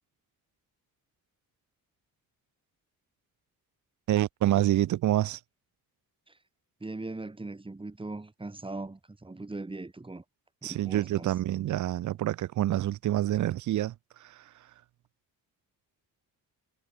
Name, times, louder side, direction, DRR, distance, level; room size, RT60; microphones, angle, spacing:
voice 1, 4.1-5.4 10.6-13.9 14.2-14.4, right 13 dB, 55° right, 0.5 m, -27 dB
voice 2, 6.8-10.2 10.6-11.3, right 2 dB, 15° right, 5.2 m, -40 dB
wide cardioid pair, 170°, 36 cm